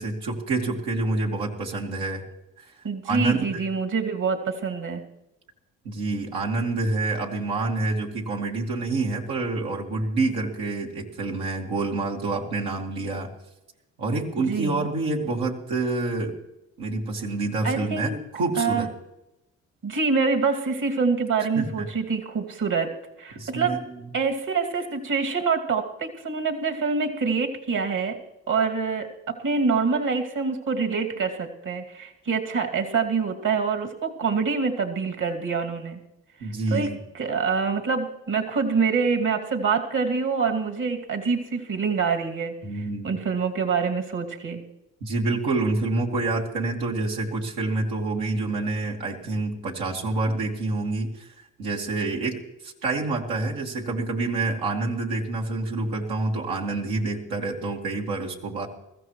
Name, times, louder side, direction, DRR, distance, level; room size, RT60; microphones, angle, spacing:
voice 1, 0.0-2.2 2.6-2.7 3.0-3.6 5.8-13.3 14.0-16.4 16.8-18.9 21.4-21.9 23.4-24.0 36.4-37.0 42.6-43.2 45.0-51.3 51.6-58.7, right 3 dB, 85° right, -1 dB, 2.1 m, -27 dB
voice 2, 2.8-5.0 14.4-14.9 17.6-18.2 18.6-18.9 19.8-22.9 23.2-23.8 24.1-28.2 28.5-36.0 36.4-36.9 37.1-44.6, right 5 dB, 60° right, 3 dB, 2.4 m, -26 dB
21.0 x 14.5 x 3.1 m, 0.92 s
supercardioid pair, 50°, 36 cm